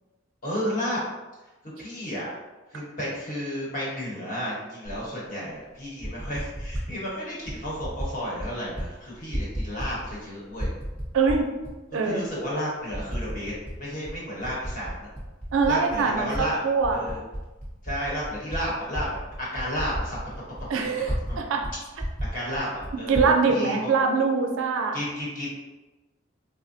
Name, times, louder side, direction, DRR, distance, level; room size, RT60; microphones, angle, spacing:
voice 1, 0.4-1.0 1.8-2.3 2.7-10.7 12.0-15.1 15.7-16.6 16.9-17.2 17.8-19.1 19.4-20.2 21.3-21.4 22.3-23.9 24.9-25.6, equal, 40° left, -6 dB, 1.0 m, -32 dB
Typing, 4.8-5.0 5.8-6.9 7.5-8.1 8.4-8.9 9.1-10.2 10.5-11.7 12.3-12.4 12.9-13.8 14.1-16.4 16.8-21.4 21.6-21.7 22.0-23.3, equal, 5° left, 0.7 m, -33 dB
voice 2, 11.1-11.5 11.9-12.2 15.5-17.0 20.7-21.7 23.1-25.0, right 4 dB, 80° right, 3 dB, 0.4 m, -23 dB
3.4 x 2.1 x 2.6 m, 1.1 s
head